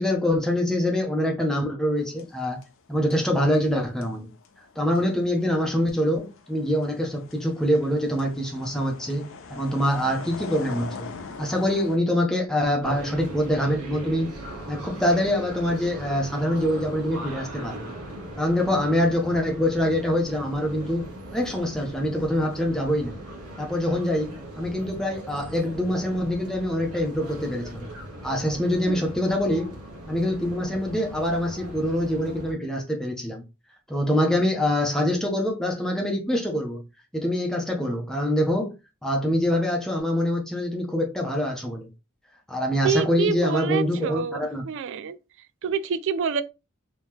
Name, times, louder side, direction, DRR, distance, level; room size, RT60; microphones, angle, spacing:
voice 1, 0.0-2.6 2.9-4.3 4.8-11.1 11.4-14.3 14.7-17.9 18.4-23.2 23.6-27.9 28.2-29.8 30.1-33.4 33.9-36.8 37.1-38.7 39.0-41.9 42.5-44.6, left 1 dB, ahead, 0.8 m, -25 dB
sound 1, 2.0-2.9 3.1-12.0, left 4 dB, 60° left, 0.6 m, -42 dB
sound 2, 12.8-32.5, right 1 dB, 90° right, 1.2 m, -39 dB
voice 2, 42.8-45.2 45.6-46.4, right 6 dB, 55° right, 0.3 m, -27 dB
3.0 x 3.0 x 3.6 m
head